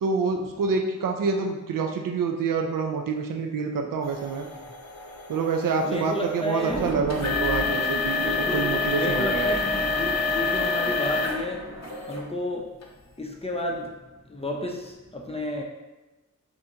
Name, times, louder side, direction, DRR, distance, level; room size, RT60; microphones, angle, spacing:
voice 1, 0.0-4.5 5.3-9.5, right 4 dB, 80° right, 2 dB, 0.5 m, -27 dB
sound 1, 4.0-11.4 11.8-12.2 12.8-12.9 13.6-13.7, left 4 dB, 55° left, 0.7 m, -28 dB
voice 2, 5.8-6.8 8.2-11.7 12.1-12.8 13.2-14.0 14.3-15.6, left 1 dB, 20° left, -1 dB, 0.6 m, -31 dB
sound 2, 6.6-12.2, right 1 dB, 20° right, 0.8 m, -35 dB
5.6 x 2.7 x 2.8 m, 1.1 s
wide cardioid pair, 70°, 32 cm